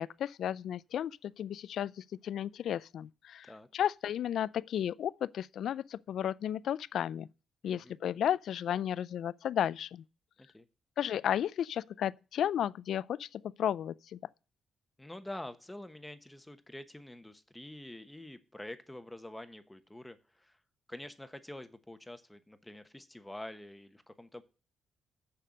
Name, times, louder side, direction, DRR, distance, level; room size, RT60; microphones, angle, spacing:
voice 1, 0.0-7.3 7.6-10.0 11.0-14.2, left 10 dB, 75° left, 0.3 m, -33 dB
voice 2, 7.6-8.0 10.4-10.7 15.0-20.6 20.9-24.4, left 1 dB, 10° left, 1.0 m, -47 dB
7.0 x 6.7 x 6.3 m
cardioid pair, 85°, 0 cm